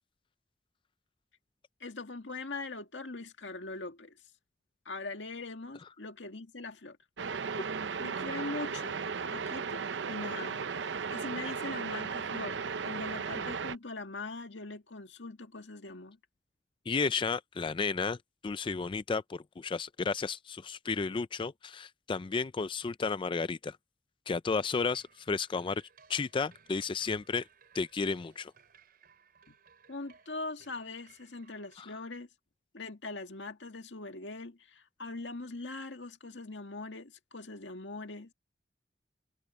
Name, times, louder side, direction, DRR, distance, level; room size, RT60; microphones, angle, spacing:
voice 1, 1.8-4.2 4.9-7.0 8.0-9.0 9.3-10.6 11.1-16.2 29.5-29.6 29.9-32.3 32.7-38.3, left 3 dB, 85° left, 1.9 m, -41 dB
sound 1, 7.2-13.7, right 5 dB, 80° right, 0.6 m, -36 dB
voice 2, 16.9-23.8 24.3-25.8 26.1-27.5 27.7-28.5 31.8-31.9, left 4 dB, 30° left, 0.4 m, -33 dB
sound 2, 24.9-31.8, right 6 dB, 55° right, 4.5 m, -62 dB
head